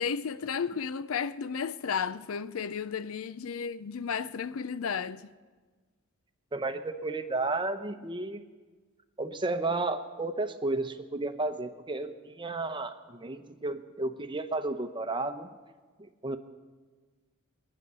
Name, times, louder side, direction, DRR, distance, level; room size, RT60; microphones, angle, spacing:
voice 1, 0.0-5.2, left 6 dB, 70° left, 0.5 m, -33 dB
voice 2, 6.5-8.4 9.2-15.5 16.0-16.4, right 2 dB, 20° right, 0.8 m, -32 dB
21.5 x 9.8 x 6.8 m
head